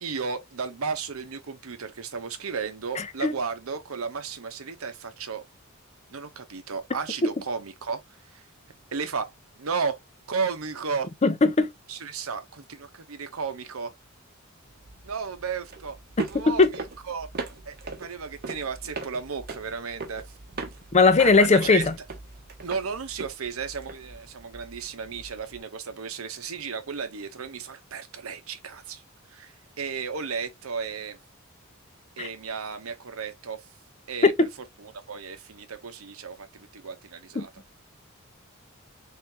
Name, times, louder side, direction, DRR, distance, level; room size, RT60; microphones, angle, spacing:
voice 1, 0.0-5.4 6.1-8.0 8.3-8.4 8.9-9.3 9.6-10.0 10.3-11.1 11.9-13.9 15.0-16.0 16.3-17.3 17.7-20.2 21.2-21.8 22.6-29.0 29.3-31.2 32.2-33.6 34.1-34.5 34.8-37.5, right 5 dB, 90° right, 0.8 m, -34 dB
voice 2, 3.0-3.3 11.2-11.7 16.3-16.7 20.9-22.0 32.2-32.3 34.2-34.5 37.4-37.5, left 3 dB, 30° left, 0.6 m, -19 dB
sound 1, 14.7-25.6, right 3 dB, 50° right, 0.8 m, -40 dB
3.8 x 3.6 x 2.7 m
head